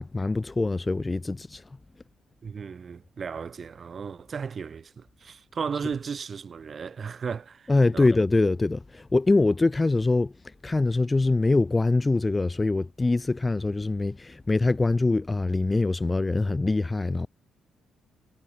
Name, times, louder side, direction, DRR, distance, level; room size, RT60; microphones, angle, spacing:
voice 1, 0.0-1.7 7.7-17.3, left 3 dB, 20° left, 0.8 m, -24 dB
voice 2, 2.4-8.1, right 6 dB, 45° right, 5.0 m, -35 dB
cardioid pair, 90°, 0 cm